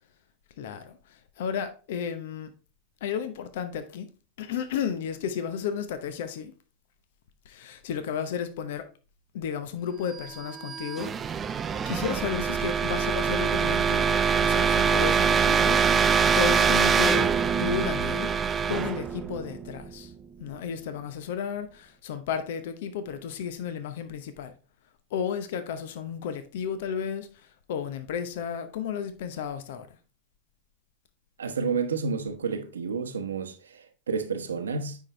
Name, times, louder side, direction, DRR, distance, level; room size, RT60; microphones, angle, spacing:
voice 1, 0.6-2.5 3.0-4.1 4.4-6.5 7.4-8.9 9.3-11.4 11.7-15.8 16.3-18.4 18.7-20.1 20.4-24.5 25.1-30.0, left 7 dB, 70° left, 0.8 m, -33 dB
sound 1, 10.3-20.1, right 6 dB, 25° right, 0.6 m, -24 dB
voice 2, 31.4-35.0, right 5 dB, 85° right, 1.0 m, -30 dB
9.6 x 4.6 x 3.2 m
hypercardioid pair, 95°, 0 cm